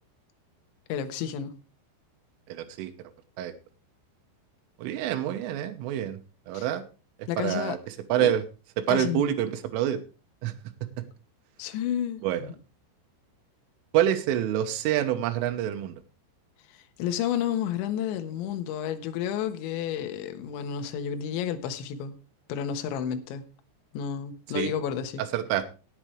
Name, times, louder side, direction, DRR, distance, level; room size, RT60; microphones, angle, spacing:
voice 1, 0.9-1.5 6.5-6.7 7.3-7.8 8.2-8.3 8.9-9.4 11.6-12.5 16.7-22.2 22.5-23.4 23.9-25.2, left 9 dB, 75° left, 8 dB, 3.4 m, -31 dB
voice 2, 2.5-2.9 3.4-3.5 4.8-6.2 6.5-6.8 7.2-8.4 8.8-10.0 10.4-10.5 12.2-12.4 13.9-16.0 24.6-24.7 25.2-25.6, right 11 dB, 85° right, 7 dB, 3.6 m, -27 dB
17.5 x 8.9 x 3.2 m, 0.33 s
omnidirectional pair, 5.7 m